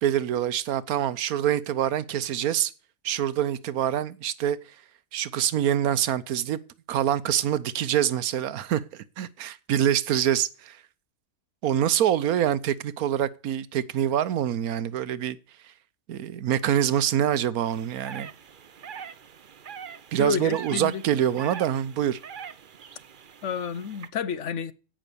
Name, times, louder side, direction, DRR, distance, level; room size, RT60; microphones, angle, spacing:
voice 1, 0.0-2.7 3.0-4.6 5.1-6.6 6.9-10.8 11.6-15.4 16.1-18.3 20.1-22.2, right 10 dB, 85° right, 1.2 m, -25 dB
sound 1, 17.7-24.1, right 7 dB, 45° right, 0.8 m, -43 dB
voice 2, 20.2-21.0 23.4-24.7, left 7 dB, 60° left, 1.1 m, -30 dB
16.5 x 6.2 x 6.9 m
omnidirectional pair, 1.5 m